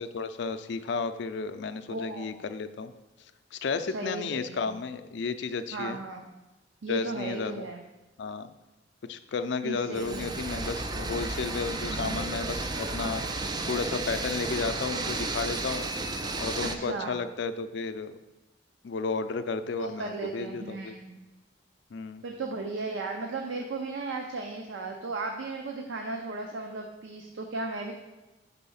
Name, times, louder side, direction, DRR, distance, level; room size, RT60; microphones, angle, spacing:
voice 1, 0.0-2.9 3.5-6.0 6.9-7.6 8.2-8.5 9.1-13.2 13.7-15.9 16.4-18.1 18.8-21.0 21.9-22.2, left 4 dB, 65° left, 10 dB, 0.4 m, -33 dB
voice 2, 1.9-2.3 3.9-4.7 5.7-6.3 6.8-7.8 9.6-10.4 11.8-12.2 16.6-17.2 19.8-21.2 22.2-27.9, right 3 dB, 90° right, 3 dB, 0.6 m, -36 dB
sound 1, 9.9-16.7, right 3 dB, 25° right, 0.4 m, -33 dB
5.4 x 4.1 x 5.6 m, 1.1 s
head